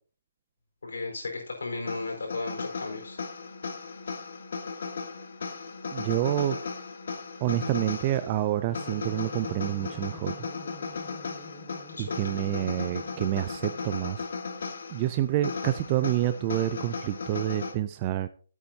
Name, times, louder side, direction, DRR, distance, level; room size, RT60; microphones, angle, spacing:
voice 1, 0.8-3.2 11.9-12.2, left 3 dB, 90° left, 1 dB, 4.3 m, -35 dB
sound 1, 1.9-17.7, left 4 dB, 60° left, 1.8 m, -36 dB
voice 2, 5.9-6.6 7.4-10.3 12.0-14.3 14.9-18.3, right 13 dB, 25° right, 12 dB, 0.4 m, -28 dB
sound 2, 8.7-14.2, left 3 dB, 5° left, 0.9 m, -48 dB
12.5 x 8.3 x 2.8 m, 0.40 s
hypercardioid pair, 165°, 0 cm